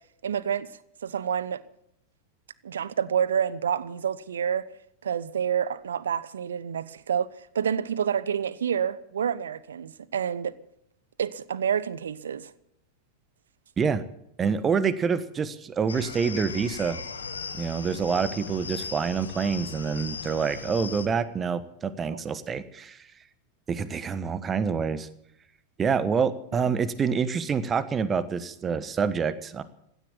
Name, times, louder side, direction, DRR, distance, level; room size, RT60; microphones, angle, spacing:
voice 1, 0.2-0.7 1.0-1.6 2.6-4.7 5.0-7.3 7.5-10.5 11.2-12.5, right 8 dB, 65° right, 0.9 m, -28 dB
voice 2, 14.4-17.0 17.5-23.1 23.7-25.1 25.8-29.6, right 6 dB, 20° right, 1.3 m, -27 dB
sound 1, 15.9-21.1, left 5 dB, 70° left, 1.5 m, -38 dB
16.5 x 12.0 x 7.1 m
figure-of-eight pair, 90°, 0 cm